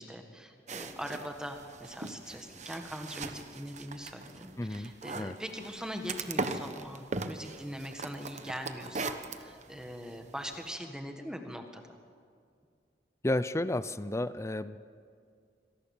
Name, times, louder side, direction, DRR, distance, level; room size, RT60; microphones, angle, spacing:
voice 1, 0.0-12.0, equal, 5° right, 4 dB, 1.7 m, -42 dB
sound 1, 0.7-10.7, right 3 dB, 45° right, 1.1 m, -40 dB
voice 2, 4.6-5.4 13.2-14.8, left 1 dB, 15° left, 15 dB, 0.6 m, -32 dB
25.5 x 18.5 x 7.3 m, 2.2 s
head